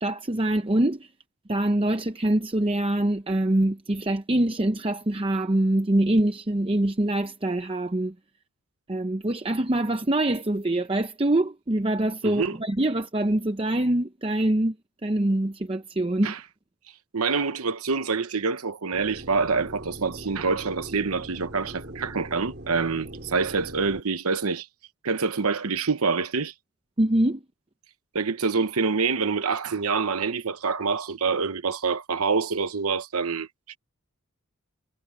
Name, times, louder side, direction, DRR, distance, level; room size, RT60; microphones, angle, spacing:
voice 1, 0.0-1.1 1.5-8.1 8.9-14.7 15.0-16.3 27.0-27.4, right 1 dB, 25° right, 0.7 m, -24 dB
voice 2, 12.2-12.6 16.2-16.4 17.1-24.7 25.0-26.5 28.1-33.8, right 4 dB, 85° right, 1.0 m, -26 dB
sound 1, 18.9-24.0, right 1 dB, 45° right, 3.3 m, -41 dB
head